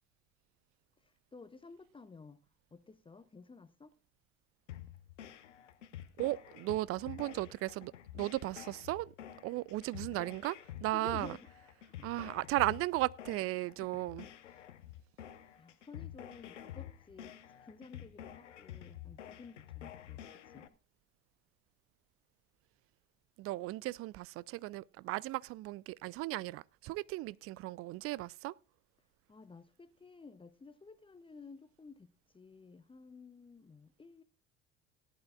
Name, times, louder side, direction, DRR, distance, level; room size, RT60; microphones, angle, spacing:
voice 1, 1.0-2.4 2.7-3.9 10.9-11.4 11.8-12.1 15.5-20.7 29.3-34.2, left 4 dB, 15° left, 0.8 m, -54 dB
sound 1, 4.7-20.7, left 11 dB, 80° left, 0.9 m, -49 dB
voice 2, 6.2-9.1 9.4-11.3 12.0-14.3 23.4-28.5, right 18 dB, 40° right, 0.5 m, -36 dB
18.0 x 11.0 x 2.4 m
figure-of-eight pair, 60°, 36 cm